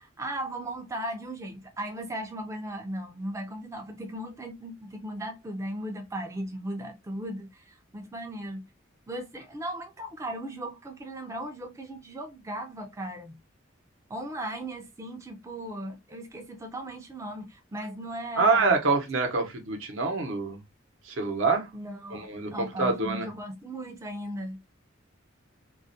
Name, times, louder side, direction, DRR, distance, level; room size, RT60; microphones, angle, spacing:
voice 1, 0.0-8.6 9.1-13.4 14.1-18.8 21.7-22.3 22.5-24.7, right 1 dB, 15° right, 0.3 m, -37 dB
voice 2, 18.4-20.6 21.0-21.7 22.1-23.3, right 4 dB, 80° right, 0.7 m, -26 dB
2.3 x 2.1 x 2.6 m
head